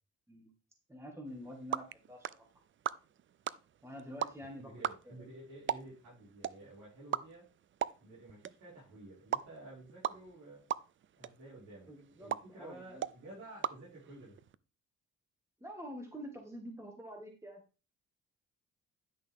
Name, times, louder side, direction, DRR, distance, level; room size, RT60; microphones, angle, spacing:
voice 1, 0.9-2.5 3.8-4.7 5.0-5.3 11.9-13.0 15.6-17.6, equal, 10° right, 2 dB, 1.9 m, -47 dB
sound 1, 1.3-14.6, right 10 dB, 40° right, 0.5 m, -41 dB
voice 2, 4.6-7.4 8.0-10.6 11.2-11.9 12.2-14.4, right 2 dB, 75° right, -8 dB, 5.6 m, -52 dB
10.5 x 6.1 x 3.6 m, 0.33 s
cardioid pair, 90°, 30 cm